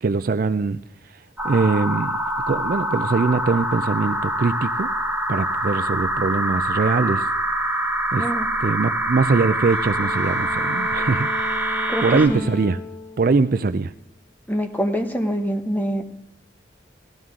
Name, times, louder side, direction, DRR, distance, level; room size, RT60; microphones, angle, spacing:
voice 1, 0.0-0.8 1.4-2.2 2.5-4.9 5.3-7.3 8.1-8.3 8.6-11.6 12.0-12.8 13.2-13.9, right 4 dB, 50° right, 13 dB, 0.4 m, -22 dB
sound 1, 1.4-12.3, right 1 dB, 10° right, 1.2 m, -25 dB
sound 2, 9.6-14.1, left 4 dB, 85° left, 1.5 m, -36 dB
voice 2, 11.9-12.5 14.5-16.0, equal, 10° left, 5 dB, 1.0 m, -25 dB
17.0 x 12.5 x 3.7 m, 0.76 s
head